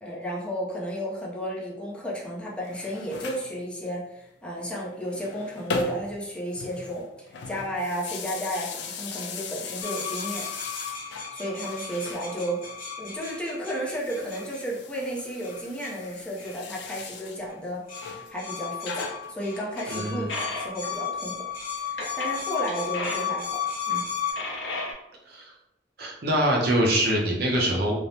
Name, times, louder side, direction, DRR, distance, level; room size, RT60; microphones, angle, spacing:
voice 1, 0.0-10.5 11.3-12.6 13.0-20.3 20.6-21.5 21.8-24.0, equal, 5° left, -5 dB, 0.5 m, -33 dB
sound 1, 2.5-3.5 4.9-6.3 6.5-11.3 11.6-12.8 13.8-17.4 17.9-18.3 18.8-20.4, left 5 dB, 65° left, 0.3 m, -38 dB
sound 2, 9.8-14.6 15.4-16.0 16.4-16.6 17.5-17.6 17.9-24.3, left 7 dB, 50° left, 0.7 m, -34 dB
voice 2, 19.9-20.4 25.3-25.5 26.0-27.9, right 1 dB, 55° right, -1 dB, 0.6 m, -24 dB
sound 3, 20.3-20.9 22.0-22.3 22.7-23.3 23.7-24.0 24.3-24.9, left 2 dB, 80° left, 0.7 m, -34 dB
3.2 x 2.0 x 2.6 m, 0.88 s
head